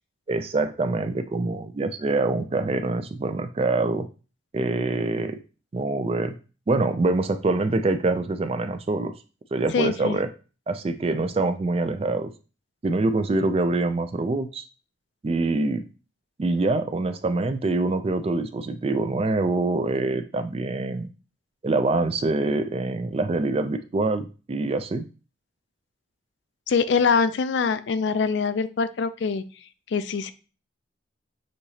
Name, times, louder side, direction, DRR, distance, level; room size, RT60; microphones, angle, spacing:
voice 1, 0.3-4.1 4.5-5.4 5.7-6.3 6.7-9.1 9.5-10.3 10.7-12.3 12.8-14.6 15.2-15.8 16.4-21.1 21.6-25.0, right 2 dB, 30° right, 9 dB, 0.3 m, -25 dB
voice 2, 9.7-10.2 26.7-29.4 29.9-30.3, left 5 dB, 65° left, 13 dB, 0.4 m, -23 dB
6.4 x 2.8 x 2.8 m, 0.34 s
head